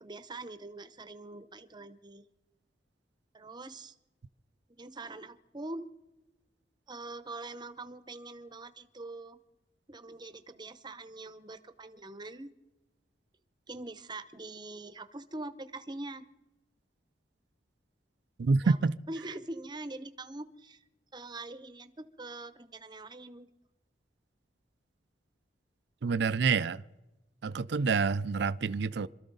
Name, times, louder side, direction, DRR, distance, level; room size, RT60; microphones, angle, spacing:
voice 1, 0.0-2.3 3.3-4.0 4.8-5.9 6.9-9.4 9.9-12.5 13.7-16.2 18.6-18.8 19.1-20.8 21.1-23.5, right 2 dB, 25° right, 0.8 m, -43 dB
voice 2, 18.4-18.9 26.0-26.8 27.4-29.1, right 4 dB, 65° right, 0.5 m, -27 dB
26.5 x 13.5 x 4.0 m
head